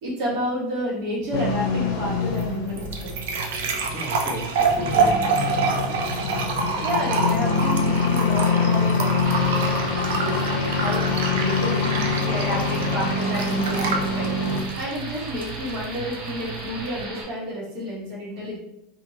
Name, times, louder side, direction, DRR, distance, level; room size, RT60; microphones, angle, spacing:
voice 1, 0.0-3.1 6.8-9.3 10.1-14.3 14.7-18.6, equal, 60° right, -7 dB, 1.3 m, -30 dB
sound 1, 1.3-14.6, left 4 dB, 65° left, 0.7 m, -25 dB
sound 2, 2.1-17.0, right 4 dB, 85° right, 0.5 m, -28 dB
voice 2, 3.9-6.1, equal, 5° left, -3 dB, 0.7 m, -35 dB
sound 3, 9.2-17.2, right 2 dB, 30° right, 0.7 m, -37 dB
2.9 x 2.5 x 2.7 m, 0.83 s
supercardioid pair, 155°, 0 cm